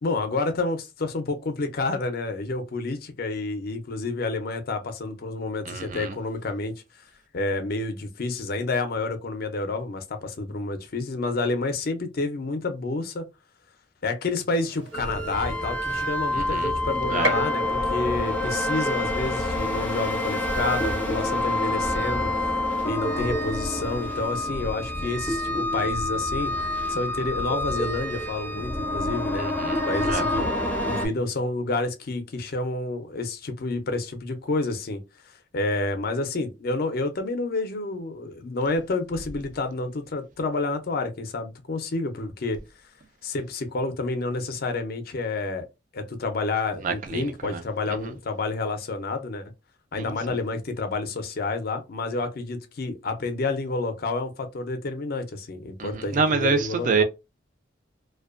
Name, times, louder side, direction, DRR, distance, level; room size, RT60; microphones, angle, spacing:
voice 1, 0.0-6.7 7.3-13.2 14.0-22.3 22.8-26.5 26.9-30.5 30.8-35.0 35.5-42.6 43.2-45.7 45.9-49.5 49.9-57.0, left 3 dB, 55° left, 0.5 m, -29 dB
voice 2, 5.7-6.1 16.3-16.7 17.1-17.3 29.4-29.8 30.1-30.2 46.8-47.6 48.0-48.1 50.0-50.1 55.8-57.0, right 5 dB, 45° right, 0.4 m, -27 dB
Gunshot gunfire, 14.5-24.5, right 1 dB, 70° right, 1.1 m, -39 dB
sound 1, 14.9-31.1, left 1 dB, 10° left, 0.6 m, -27 dB
2.5 x 2.2 x 2.4 m
head